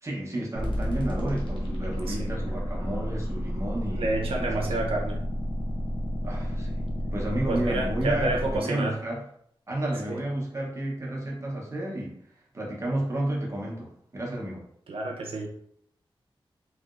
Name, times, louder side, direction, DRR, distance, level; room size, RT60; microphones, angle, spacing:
voice 1, 0.0-4.7 6.2-6.8 7.1-9.2 9.7-12.2 12.5-14.6, right 1 dB, 30° right, -3 dB, 0.8 m, -31 dB
sound 1, 0.5-8.6, equal, 60° left, 0.9 m, -31 dB
voice 2, 3.9-5.2 7.5-9.0 10.1-10.2 14.9-15.5, right 2 dB, 85° right, 1 dB, 0.6 m, -29 dB
3.1 x 2.8 x 2.4 m, 0.69 s
wide cardioid pair, 105°, 9 cm